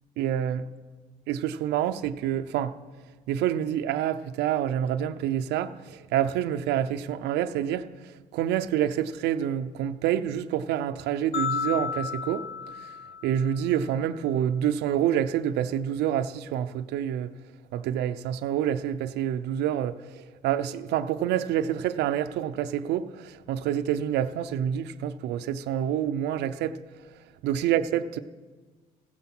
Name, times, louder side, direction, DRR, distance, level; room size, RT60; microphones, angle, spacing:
voice 1, 0.2-0.6 1.3-2.8 3.3-12.5 12.8-12.9 13.2-17.3 17.7-26.8 27.4-28.2, right 10 dB, 85° right, 0.6 m, -27 dB
sound 1, 11.3-13.7, left 6 dB, 65° left, 1.1 m, -33 dB
15.5 x 11.5 x 6.0 m
cardioid pair, 110°, 17 cm